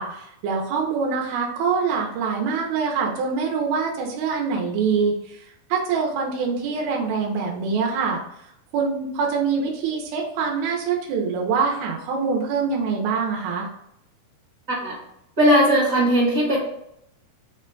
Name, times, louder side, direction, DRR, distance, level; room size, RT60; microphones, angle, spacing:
voice 1, 0.0-5.1 5.7-8.2 8.7-13.7, right 5 dB, 90° right, -1 dB, 2.7 m, -24 dB
voice 2, 15.4-16.6, equal, 55° right, -7 dB, 0.9 m, -18 dB
5.8 x 2.2 x 3.8 m, 0.77 s
omnidirectional pair, 4.3 m